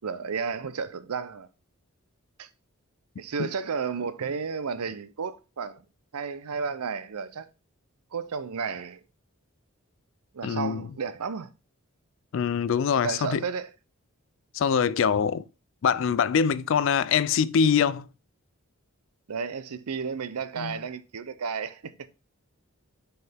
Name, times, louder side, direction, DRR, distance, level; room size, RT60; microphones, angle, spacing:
voice 1, 0.0-1.5 2.4-2.5 3.2-5.8 6.1-7.5 8.1-9.0 10.3-11.5 13.0-13.7 19.3-22.1, right 5 dB, 85° right, 0.6 m, -32 dB
voice 2, 10.4-10.8 12.3-13.4 14.5-15.4 15.8-18.1 20.6-20.8, left 7 dB, 60° left, 0.3 m, -24 dB
6.4 x 4.7 x 3.4 m
head